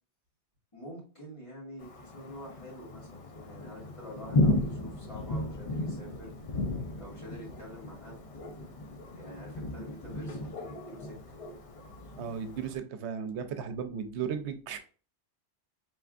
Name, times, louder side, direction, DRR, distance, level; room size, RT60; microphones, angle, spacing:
voice 1, 0.7-6.3 7.0-8.2 9.1-11.2, equal, 30° left, -5 dB, 1.8 m, -47 dB
Thunder, 1.8-12.8, left 2 dB, 45° left, 0.5 m, -34 dB
voice 2, 12.2-14.8, right 7 dB, 80° right, 8 dB, 0.9 m, -35 dB
4.7 x 3.4 x 2.4 m, 0.38 s
omnidirectional pair, 1.1 m